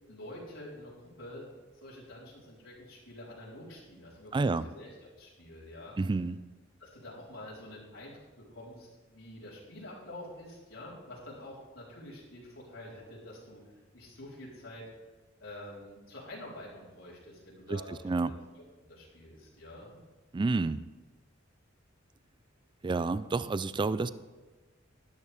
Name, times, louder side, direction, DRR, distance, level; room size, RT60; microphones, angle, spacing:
voice 1, 0.1-1.5 1.7-4.3 4.7-4.9 5.2-6.0 6.8-8.2 8.5-14.8 15.4-18.0 18.3-18.4 18.8-20.0, left 1 dB, 90° left, -7 dB, 4.0 m, -47 dB
voice 2, 4.3-4.7 6.0-6.4 17.7-18.3 20.3-20.9 22.8-24.1, right 3 dB, 25° right, 15 dB, 0.3 m, -29 dB
13.0 x 11.0 x 3.5 m, 1.2 s
head